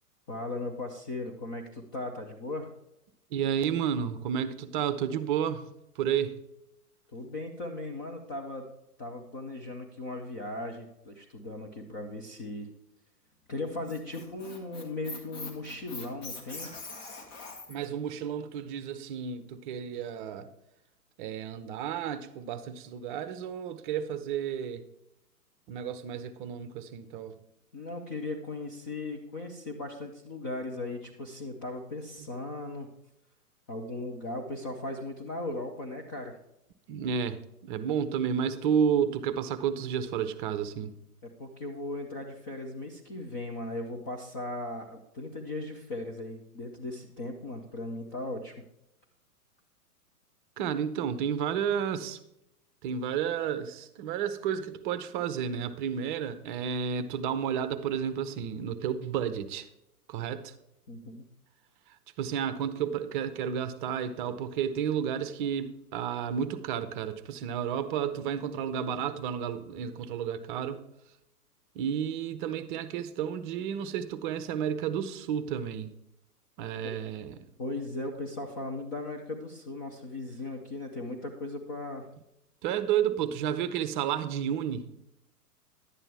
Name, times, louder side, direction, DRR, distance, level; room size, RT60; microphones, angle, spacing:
voice 1, 0.3-2.7 7.1-8.7 9.0-12.7 13.5-16.7 27.7-32.9 33.7-36.3 41.4-48.5 60.9-61.3 77.6-82.1, left 2 dB, 15° left, 0.4 m, -37 dB
voice 2, 3.3-5.7 6.0-6.4 17.7-20.5 21.2-24.8 25.7-27.4 36.9-40.9 50.6-52.2 52.8-59.7 60.1-60.5 62.2-70.8 71.7-75.9 76.6-77.5 82.6-84.9, right 8 dB, 35° right, 0.7 m, -31 dB
Squeak, 13.6-17.9, left 3 dB, 35° left, 2.0 m, -42 dB
11.0 x 8.9 x 3.4 m
hypercardioid pair, 115°, 46 cm